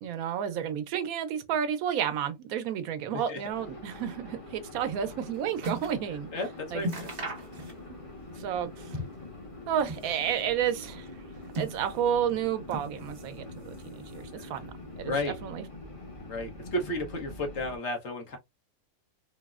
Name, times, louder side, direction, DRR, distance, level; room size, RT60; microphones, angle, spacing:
voice 1, 0.0-6.3 6.7-6.8 7.9-8.0 8.4-8.9 9.7-11.1 11.6-13.8 14.1-14.7 15.0-15.6, right 9 dB, 85° right, 1.0 m, -31 dB
sound 1, 3.5-17.8, left 2 dB, 25° left, 1.0 m, -45 dB
sound 2, 5.0-6.1 6.4-6.5 6.8-8.1 8.4-9.3 9.7-10.5 11.2-12.2 12.7-13.4 13.7-14.4 15.1-15.2, equal, 55° right, 1.4 m, -38 dB
voice 2, 6.3-7.1 14.4-14.5 15.0-15.3 16.3-18.4, left 1 dB, 60° left, 1.1 m, -33 dB
3.8 x 2.0 x 2.3 m
omnidirectional pair, 1.5 m